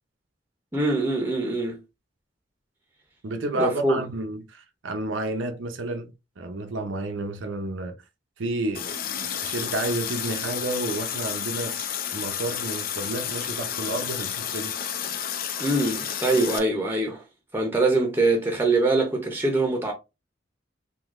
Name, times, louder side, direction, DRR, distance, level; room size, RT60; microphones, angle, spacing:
voice 1, 0.7-1.8 3.5-4.0 15.6-17.2 17.5-19.9, right 2 dB, 10° right, 0.6 m, -23 dB
voice 2, 3.2-8.0 8.4-11.8 12.1-14.8, right 2 dB, 80° right, 0.6 m, -31 dB
Water tap faucet, 8.7-16.6, left 9 dB, 50° left, 0.5 m, -31 dB
3.8 x 2.7 x 2.5 m
head